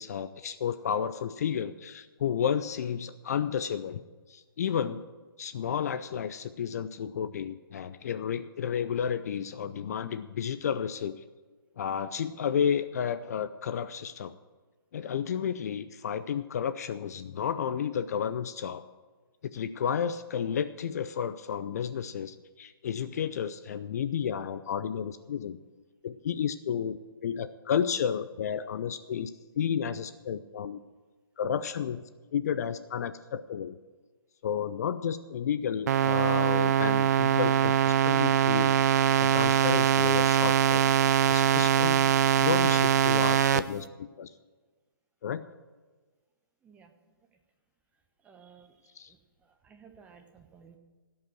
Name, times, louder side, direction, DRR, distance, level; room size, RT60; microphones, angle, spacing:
voice 1, 0.0-4.0 4.3-5.0 5.4-11.2 11.8-14.3 14.9-18.8 19.4-25.6 26.0-29.3 29.6-30.8 31.4-32.0 32.3-33.8 34.4-38.7 39.2-40.8 41.3-42.0 42.4-44.3 45.2-45.4 49.0-49.1, left 8 dB, 45° left, 12 dB, 0.5 m, -32 dB
sound 1, 35.9-43.6, right 9 dB, 45° right, 0.5 m, -23 dB
voice 2, 48.2-50.8, right 6 dB, 10° right, 5 dB, 1.0 m, -56 dB
16.5 x 5.5 x 7.8 m, 1.3 s
figure-of-eight pair, 140°, 12 cm